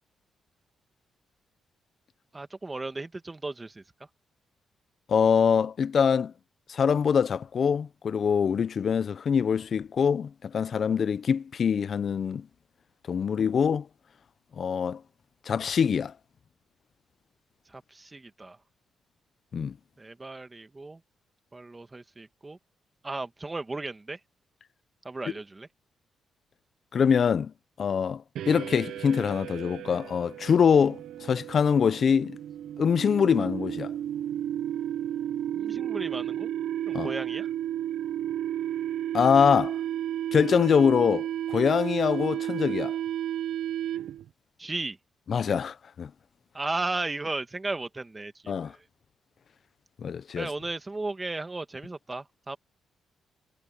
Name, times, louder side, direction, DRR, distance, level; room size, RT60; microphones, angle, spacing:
voice 1, 2.3-3.8 17.7-18.6 20.0-21.0 21.5-22.6 23.0-24.2 25.0-25.7 35.6-36.5 36.9-37.5 44.6-45.0 46.5-48.8 50.4-52.6, right 2 dB, 25° right, 1.9 m, -35 dB
voice 2, 5.1-6.3 6.7-12.5 13.1-13.9 14.6-15.0 15.5-16.1 19.5-19.7 26.9-27.5 27.8-32.4 32.8-33.9 36.9-37.1 39.1-39.8 40.3-43.0 45.3-46.1 48.5-48.7 50.0-50.5, left 7 dB, 60° left, 0.8 m, -24 dB
sound 1, 28.4-44.3, right 11 dB, 80° right, 0.7 m, -33 dB
supercardioid pair, 65°, 0 cm